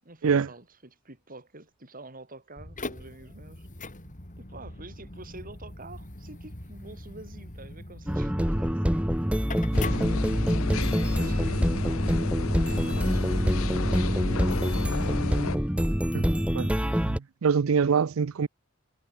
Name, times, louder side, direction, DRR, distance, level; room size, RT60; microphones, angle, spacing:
voice 1, 0.0-3.7 4.4-10.3 11.2-13.5 13.8-14.9 17.7-18.0, right 2 dB, 45° right, 7.0 m, -48 dB
sound 1, 2.6-10.8, left 2 dB, 40° left, 4.1 m, -42 dB
sound 2, 8.1-17.2, equal, 5° right, 1.4 m, -26 dB
sound 3, 9.7-15.6, left 4 dB, 85° left, 0.8 m, -32 dB
voice 2, 17.1-18.5, right 6 dB, 80° right, 0.5 m, -24 dB
head